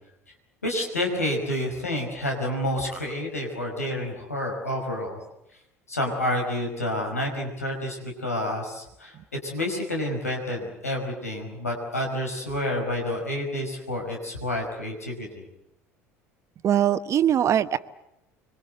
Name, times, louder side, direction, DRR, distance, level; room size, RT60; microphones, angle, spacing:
voice 1, 0.6-5.2 5.9-9.1 9.4-15.4, left 1 dB, 85° left, 1 dB, 5.5 m, -29 dB
voice 2, 16.6-17.8, right 10 dB, 40° right, 12 dB, 1.1 m, -21 dB
26.0 x 23.5 x 8.0 m, 0.83 s
figure-of-eight pair, 65°, 8 cm